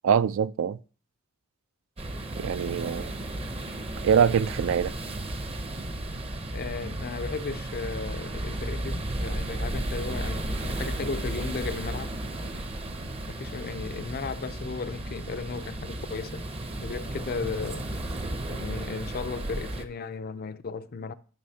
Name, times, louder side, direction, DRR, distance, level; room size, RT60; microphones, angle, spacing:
voice 1, 0.0-0.8 2.4-3.1 4.0-4.9, right 7 dB, 60° right, 0.3 m, -23 dB
sound 1, 2.0-19.9, right 1 dB, 25° right, 0.6 m, -34 dB
voice 2, 6.5-12.1 13.3-16.4 16.8-17.9 18.5-21.1, left 4 dB, 45° left, 0.4 m, -35 dB
Aircraft, 11.6-18.4, right 1 dB, 85° right, 1.4 m, -53 dB
13.0 x 6.3 x 2.8 m
head